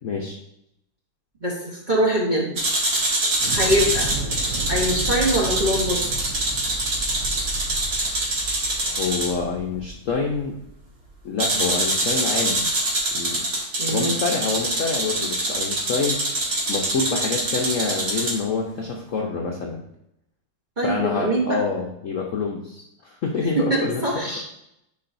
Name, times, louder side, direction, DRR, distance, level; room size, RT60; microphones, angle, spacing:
voice 1, 0.0-0.4 8.9-10.6 11.2-12.7 13.1-13.5 13.9-19.9 20.8-24.0, left 4 dB, 65° left, -1 dB, 0.8 m, -27 dB
voice 2, 1.4-2.6 3.5-4.1 4.7-6.1 13.8-14.2 20.8-21.6 23.6-24.4, equal, 35° right, -5 dB, 0.9 m, -23 dB
sound 1, 2.6-9.3 11.4-18.4, right 2 dB, 55° right, 2.0 m, -25 dB
Thunder / Explosion, 3.4-11.6, right 3 dB, 80° right, 0.7 m, -33 dB
9.9 x 3.8 x 2.6 m, 0.80 s
omnidirectional pair, 2.1 m